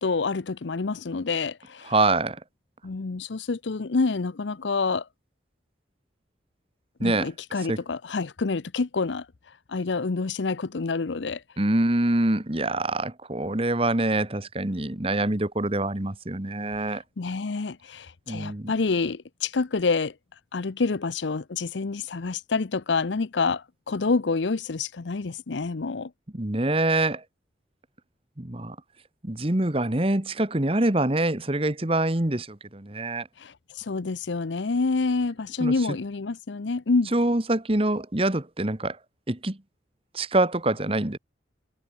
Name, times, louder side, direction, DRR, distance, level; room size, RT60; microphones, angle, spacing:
voice 1, 0.0-1.9 2.8-5.1 7.0-9.3 9.7-11.4 17.2-20.1 20.5-26.1 33.4-37.1, left 4 dB, 80° left, 0.7 m, -27 dB
voice 2, 1.8-2.4 7.0-7.3 7.7-7.8 11.6-17.0 18.3-18.7 26.3-27.2 28.4-28.8 29.2-33.3 35.6-35.7 37.1-39.0 39.3-39.6 40.1-41.2, right 2 dB, 30° right, 1.4 m, -25 dB
head